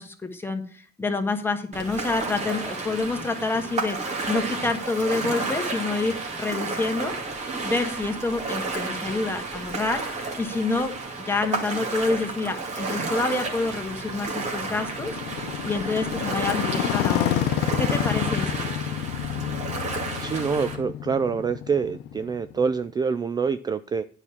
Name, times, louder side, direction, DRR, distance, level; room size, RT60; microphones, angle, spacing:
voice 1, 0.0-10.9 11.3-17.4 17.8-18.7, left 3 dB, 15° left, 4 dB, 1.6 m, -28 dB
Ocean, 1.7-20.8, right 3 dB, 40° right, 2.3 m, -31 dB
Motorcycle, 13.0-22.9, left 11 dB, 80° left, 0.7 m, -29 dB
voice 2, 20.2-24.0, right 5 dB, 25° right, 13 dB, 0.4 m, -26 dB
9.5 x 4.9 x 7.1 m, 0.43 s
cardioid pair, 110°, 17 cm